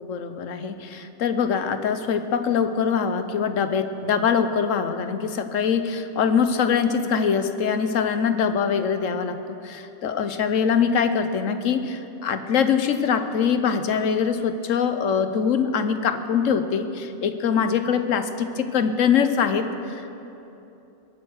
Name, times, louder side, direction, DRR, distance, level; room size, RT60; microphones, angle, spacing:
voice 1, 0.0-9.4 9.6-20.1, left 6 dB, 70° left, 9 dB, 1.2 m, -23 dB
21.0 x 9.1 x 6.4 m, 2.9 s
omnidirectional pair, 1.4 m